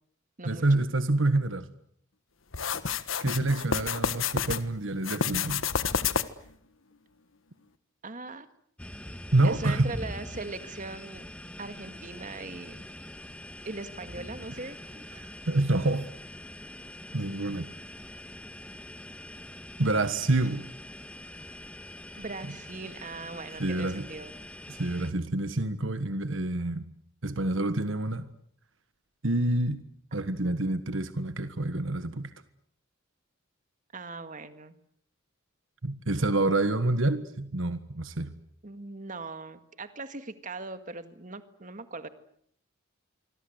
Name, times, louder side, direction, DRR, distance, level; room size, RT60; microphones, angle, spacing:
voice 1, 0.4-1.7 3.2-5.6 9.3-9.9 15.1-16.1 17.1-17.7 19.8-20.7 23.6-24.1 24.7-26.8 27.2-28.3 29.2-29.8 30.1-32.3 35.8-38.3, right 2 dB, 65° right, 11 dB, 1.5 m, -27 dB
sound 1, 2.5-4.6 5.0-6.5, left 6 dB, 75° left, 1.4 m, -29 dB
voice 2, 8.0-8.5 9.4-11.3 11.6-12.8 13.6-15.1 22.2-24.3 33.9-34.8 38.6-42.1, right 3 dB, 40° right, 10 dB, 1.9 m, -40 dB
sound 2, 8.8-25.1, left 1 dB, 5° left, 1.5 m, -44 dB
26.5 x 24.0 x 8.0 m, 0.67 s
head